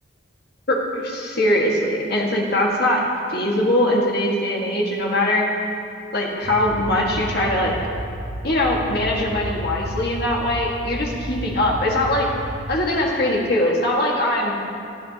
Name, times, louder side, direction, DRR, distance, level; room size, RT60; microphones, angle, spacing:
voice 1, 0.7-3.0 3.3-5.5 6.1-7.7 8.4-12.3 12.7-14.6, left 1 dB, 50° left, -2 dB, 1.8 m, -21 dB
sound 1, 6.4-12.7, equal, 85° right, 2.2 m, -32 dB
18.0 x 12.0 x 2.9 m, 2.5 s
head